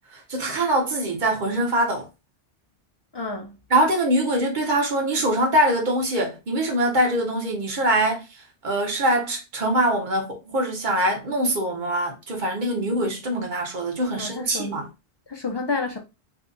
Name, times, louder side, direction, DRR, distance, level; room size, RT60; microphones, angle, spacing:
voice 1, 0.1-2.1 3.7-8.2 8.6-14.9, right 1 dB, 45° right, 1.0 m, -23 dB
voice 2, 3.1-3.6 14.1-14.8 15.3-16.0, left 3 dB, 30° left, 0.5 m, -29 dB
2.7 x 2.4 x 3.8 m
omnidirectional pair, 1.1 m